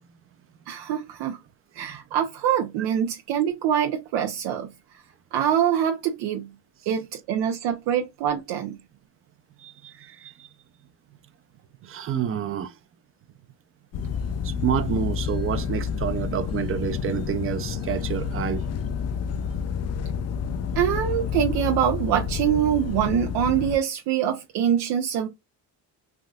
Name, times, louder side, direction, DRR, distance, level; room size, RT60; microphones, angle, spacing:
voice 1, 0.7-1.4 1.7-4.7 5.3-6.5 6.9-8.8 20.8-25.3, right 9 dB, 80° right, 0.6 m, -24 dB
voice 2, 9.6-10.5 11.8-12.7 14.4-18.6, right 9 dB, 35° right, 0.5 m, -29 dB
sound 1, 13.9-23.8, left 7 dB, 40° left, 0.4 m, -29 dB
3.4 x 2.6 x 2.3 m
cardioid pair, 90°, 39 cm